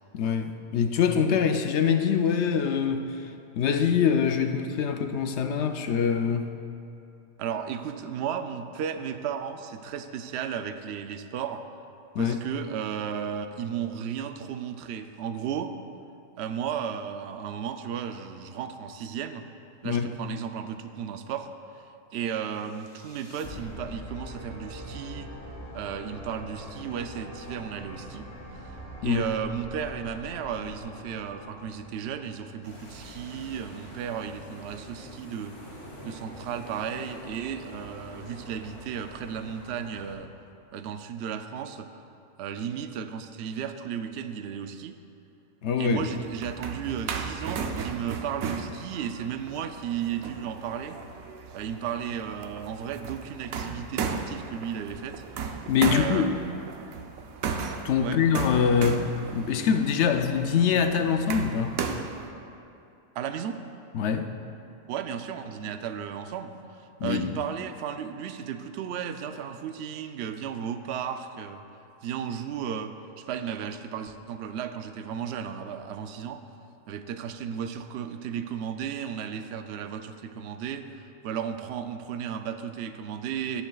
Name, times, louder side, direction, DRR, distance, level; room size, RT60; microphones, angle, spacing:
voice 1, 0.1-3.3 3.6-6.5 12.1-12.4 19.8-20.1 29.0-29.2 45.6-46.1 55.7-56.4 57.8-61.8 63.9-64.3 67.0-67.4, left 7 dB, 65° left, 6 dB, 0.8 m, -24 dB
voice 2, 7.4-11.6 12.2-15.7 16.4-19.5 19.8-21.8 22.1-25.3 25.7-28.3 29.0-35.5 36.0-40.3 40.7-41.9 42.4-45.0 45.8-51.0 51.5-55.2 55.9-56.6 58.0-58.2 63.1-63.6 64.9-71.6 72.0-76.4 76.9-83.6, right 8 dB, 65° right, 8 dB, 0.7 m, -34 dB
sound 1, 22.5-32.7, equal, 25° left, 1.9 m, -43 dB
sound 2, 32.6-40.1, equal, 40° left, 2.3 m, -45 dB
sound 3, 46.1-62.3, right 5 dB, 85° right, 1.1 m, -35 dB
19.0 x 7.0 x 2.3 m, 2.7 s
omnidirectional pair, 1.4 m